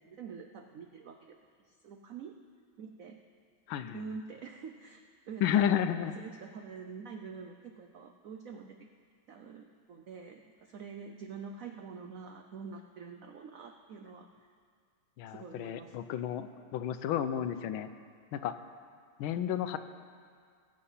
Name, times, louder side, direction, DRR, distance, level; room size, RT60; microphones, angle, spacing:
voice 1, 0.0-1.4 1.7-2.3 2.8-3.2 3.9-5.0 5.3-5.8 6.2-8.8 9.3-14.3 15.3-16.0, right 5 dB, 85° right, 5 dB, 0.7 m, -46 dB
voice 2, 3.7-4.0 5.4-6.1 15.2-17.9 18.3-18.5 19.2-19.8, left 10 dB, 85° left, 11 dB, 1.4 m, -31 dB
20.5 x 7.7 x 5.6 m, 2.1 s
omnidirectional pair, 2.3 m